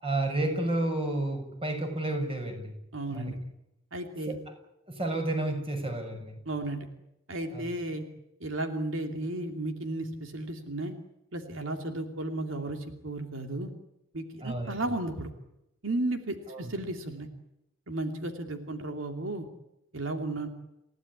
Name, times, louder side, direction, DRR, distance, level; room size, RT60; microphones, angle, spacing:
voice 1, 0.0-2.7 3.1-3.3 4.3-4.4 4.9-6.4 7.5-7.8 14.4-14.8 16.5-16.7, right 2 dB, 30° right, 4 dB, 6.6 m, -31 dB
voice 2, 2.9-3.4 3.9-4.4 6.5-6.9 7.3-8.0 8.4-10.9 11.3-13.7 14.1-15.3 15.8-17.3 17.9-19.5 19.9-20.5, right 2 dB, 85° right, 5 dB, 2.8 m, -34 dB
29.0 x 17.0 x 9.8 m, 0.87 s
head